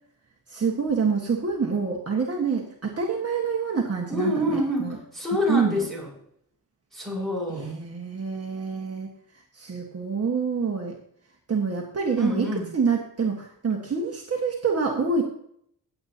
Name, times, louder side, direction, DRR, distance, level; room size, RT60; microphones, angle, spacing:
voice 1, 0.5-5.0 5.5-5.9 7.5-9.1 9.5-10.9 11.5-12.5 12.7-15.3, right 5 dB, 40° right, -1 dB, 1.6 m, -26 dB
voice 2, 4.1-6.1 6.9-7.7 12.2-12.7, left 1 dB, ahead, -4 dB, 5.3 m, -27 dB
16.5 x 8.3 x 2.8 m, 0.68 s
wide cardioid pair, 135°, 38 cm